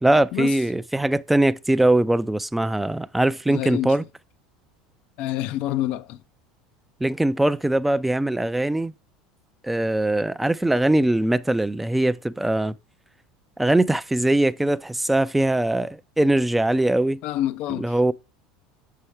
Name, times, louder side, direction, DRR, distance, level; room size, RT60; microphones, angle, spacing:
voice 1, 0.0-4.0 7.0-8.9 9.6-12.8 13.6-17.2 17.7-18.1, right 1 dB, 5° right, 0.4 m, -21 dB
voice 2, 3.5-4.0 5.2-6.2 17.2-17.9, left 13 dB, 60° left, 0.4 m, -27 dB
6.9 x 5.7 x 3.2 m
hypercardioid pair, 90°, 2 cm